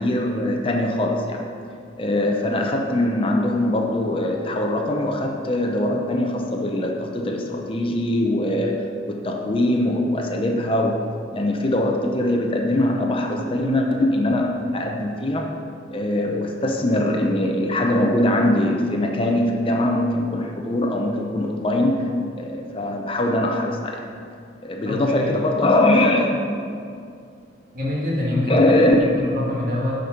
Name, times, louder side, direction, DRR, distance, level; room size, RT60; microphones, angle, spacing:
voice 1, 0.0-1.4 2.0-11.1 11.3-15.5 15.9-22.0 22.4-24.0 24.6-26.4 28.5-29.1, left 1 dB, 30° left, 2 dB, 0.7 m, -22 dB
voice 2, 24.8-25.4 27.7-28.6 29.1-30.1, left 1 dB, 50° right, -5 dB, 2.5 m, -25 dB
10.0 x 5.3 x 6.5 m, 2.4 s
head